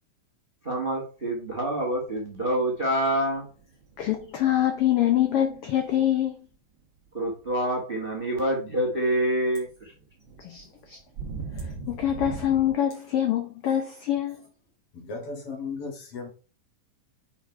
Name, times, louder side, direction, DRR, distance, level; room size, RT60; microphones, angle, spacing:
voice 1, 0.6-3.5 7.1-9.9, right 1 dB, 25° right, 1.3 m, -27 dB
sound 1, 1.5-1.6 2.1-2.5 2.8-6.0 7.1-7.6 8.5-9.0 9.3-12.8, right 4 dB, 85° right, 1.0 m, -39 dB
voice 2, 4.0-6.4 10.4-11.0 11.9-14.4, left 11 dB, 70° left, 1.4 m, -25 dB
voice 3, 14.9-16.3, left 4 dB, 50° left, 2.4 m, -36 dB
6.3 x 5.2 x 4.5 m
omnidirectional pair, 3.6 m